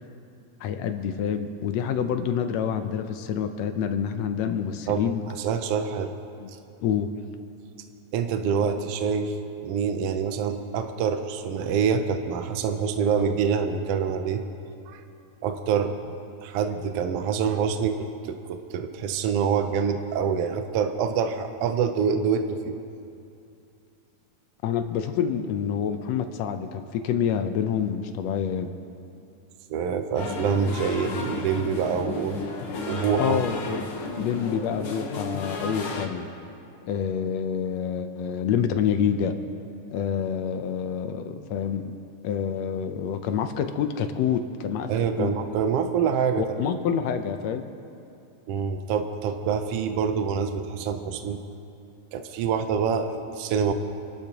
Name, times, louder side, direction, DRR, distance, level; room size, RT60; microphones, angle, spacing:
voice 1, 0.6-5.2 6.4-6.5 6.8-7.1 24.6-28.7 33.2-33.8 34.1-36.3 36.8-39.3 39.9-42.0 42.2-44.9 45.2-45.3 46.4-47.7, left 8 dB, 75° left, 8 dB, 1.8 m, -27 dB
voice 2, 5.3-6.2 8.1-9.3 9.6-14.4 14.9-15.0 15.4-16.2 16.4-22.8 29.7-32.4 32.9-33.4 44.9-46.7 48.5-51.4 52.1-53.7, right 6 dB, 70° right, 7 dB, 1.5 m, -26 dB
sound 1, 30.1-36.1, left 3 dB, 55° left, 1.8 m, -33 dB
28.5 x 12.0 x 2.9 m, 2.6 s
omnidirectional pair, 3.4 m